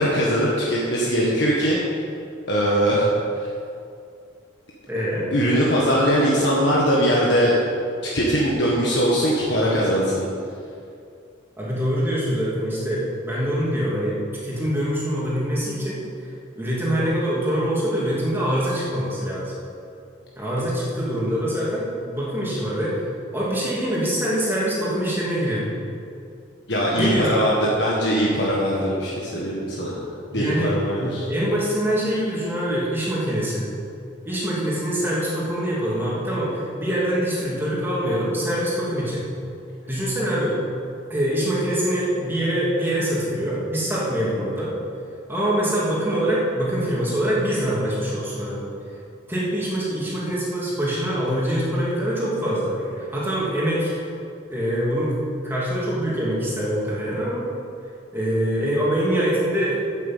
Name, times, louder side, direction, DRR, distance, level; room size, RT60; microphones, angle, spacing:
voice 1, 0.0-1.8 2.5-3.1 3.4-3.5 5.3-7.6 8.1-10.3 26.7-30.0 30.3-31.2, equal, 60° left, -5 dB, 1.6 m, -21 dB
voice 2, 4.9-5.3 11.6-14.1 14.4-19.6 20.4-23.0 23.3-25.7 27.0-27.3 30.3-33.7 34.3-39.2 39.9-40.6 41.1-44.7 45.3-48.7 49.3-54.1 54.5-55.1 55.4-57.4 58.1-60.0, equal, 10° right, -7 dB, 2.7 m, -24 dB
8.7 x 8.4 x 7.3 m, 2.5 s
head